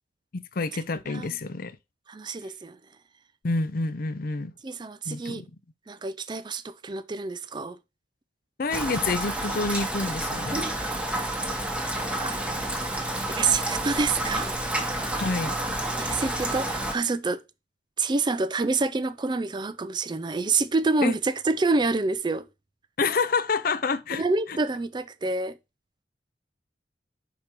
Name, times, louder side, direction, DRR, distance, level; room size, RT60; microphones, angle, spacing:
voice 1, 0.3-1.8 3.4-4.5 5.1-5.5 8.6-10.6 15.2-15.6 21.0-21.2 23.0-24.6, left 4 dB, 50° left, 0.5 m, -28 dB
voice 2, 2.1-2.8 4.6-5.4 5.9-7.8 10.5-10.7 12.2-12.4 13.3-14.5 16.0-17.4 18.0-22.5 24.1-25.6, right 3 dB, 25° right, 0.4 m, -27 dB
Rain, 8.7-16.9, right 1 dB, 5° right, 1.0 m, -29 dB
5.1 x 4.4 x 5.9 m
head